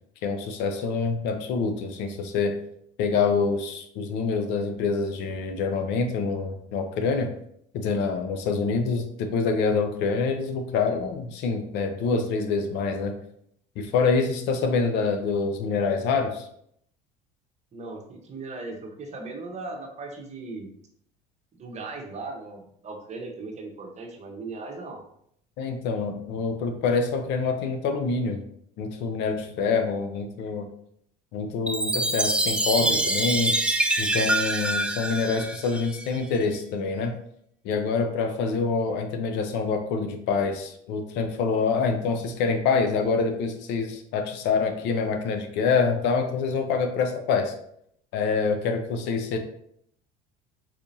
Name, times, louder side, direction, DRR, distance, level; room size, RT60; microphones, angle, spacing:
voice 1, 0.2-2.5 3.0-7.3 7.7-13.1 13.8-16.5 25.6-28.4 28.8-30.7 31.3-33.5 34.0-37.1 37.6-47.5 48.1-49.4, left 4 dB, 65° left, 6 dB, 0.6 m, -26 dB
voice 2, 17.7-20.7 21.5-25.0, right 3 dB, 35° right, 1 dB, 1.0 m, -38 dB
Chime, 31.7-36.2, right 1 dB, 5° right, 0.3 m, -25 dB
4.2 x 2.7 x 2.7 m, 0.69 s
supercardioid pair, 85°, 20 cm